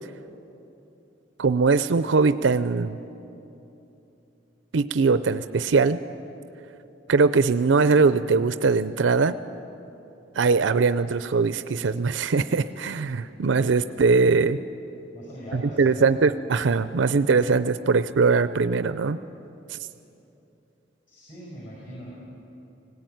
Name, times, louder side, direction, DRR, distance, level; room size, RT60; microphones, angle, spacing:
voice 1, 1.4-3.0 4.7-6.0 7.1-9.4 10.4-14.6 15.5-19.2 19.7-19.8, right 4 dB, 90° right, 13 dB, 0.5 m, -21 dB
voice 2, 15.1-16.1 21.1-22.1, equal, 45° left, -4 dB, 5.6 m, -40 dB
19.5 x 17.5 x 9.2 m, 2.9 s
head